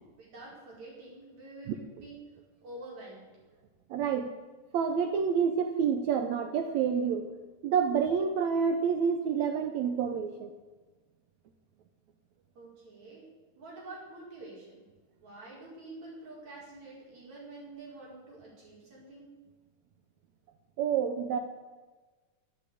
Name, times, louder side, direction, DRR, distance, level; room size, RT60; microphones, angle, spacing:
voice 1, 0.2-2.2 2.6-3.4 12.6-13.3 13.6-14.9 15.2-19.4, right 2 dB, 55° right, -5 dB, 6.0 m, -47 dB
voice 2, 3.9-4.3 4.7-7.3 7.6-10.5 20.8-21.4, right 7 dB, 70° right, 6 dB, 1.9 m, -28 dB
12.0 x 10.0 x 8.5 m, 1.3 s
omnidirectional pair, 3.9 m